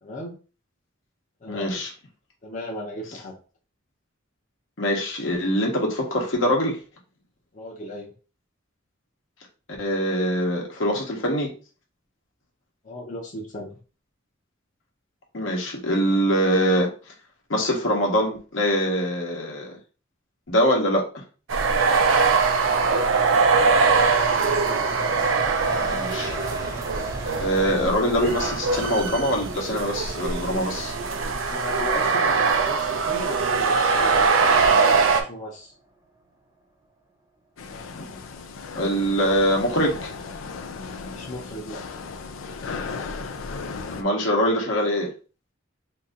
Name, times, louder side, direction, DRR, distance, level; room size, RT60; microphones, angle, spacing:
voice 1, 0.0-0.4 1.4-1.8 2.4-3.3 7.5-8.1 12.8-13.8 22.8-23.1 31.5-35.7 41.1-41.8, left 1 dB, 40° left, -3 dB, 0.7 m, -36 dB
voice 2, 1.5-1.9 4.8-6.8 9.8-11.5 15.3-16.9 17.5-19.8 20.5-21.1 25.3-26.4 27.4-31.0 37.9-38.1 38.7-40.1 43.9-45.1, equal, 70° left, -1 dB, 1.1 m, -23 dB
sound 1, 21.5-35.2, right 4 dB, 80° right, 0.5 m, -22 dB
sound 2, 22.9-35.7 36.1-36.2, right 2 dB, 20° right, 0.7 m, -39 dB
sound 3, 37.6-44.0, left 4 dB, 85° left, 0.5 m, -36 dB
2.9 x 2.6 x 3.7 m, 0.36 s
head